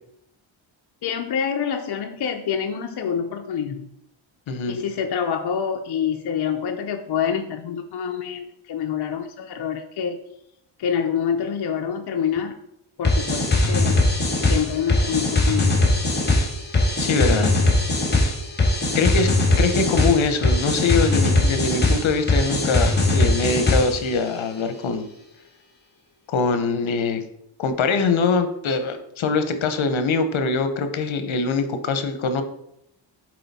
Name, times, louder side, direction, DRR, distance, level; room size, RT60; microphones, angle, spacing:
voice 1, 1.0-3.9 4.7-10.2 10.8-12.6 13.0-14.1 14.4-15.8, left 7 dB, 55° left, 3 dB, 0.6 m, -26 dB
voice 2, 4.5-4.8 17.0-17.5 18.9-19.3 19.6-25.1 26.3-27.2 27.6-32.4, left 4 dB, 70° left, 9 dB, 0.9 m, -23 dB
sound 1, 13.0-24.1, left 2 dB, 20° left, 1.7 m, -20 dB
7.6 x 4.4 x 4.1 m, 0.78 s
wide cardioid pair, 135°, 49 cm